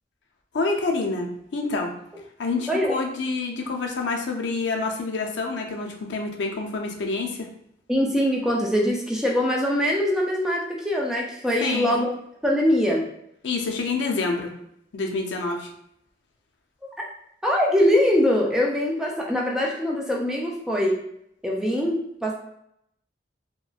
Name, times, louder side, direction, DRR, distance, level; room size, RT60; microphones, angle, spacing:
voice 1, 0.5-1.3 1.5-1.9 2.4-7.5 11.6-12.0 13.4-14.5 14.9-15.7, left 3 dB, 70° left, 2 dB, 0.5 m, -27 dB
voice 2, 2.7-3.0 7.9-12.1 12.4-13.1 16.8-17.1 17.4-21.0 21.4-22.3, equal, 5° right, -2 dB, 0.3 m, -23 dB
3.0 x 2.4 x 2.3 m, 0.74 s
head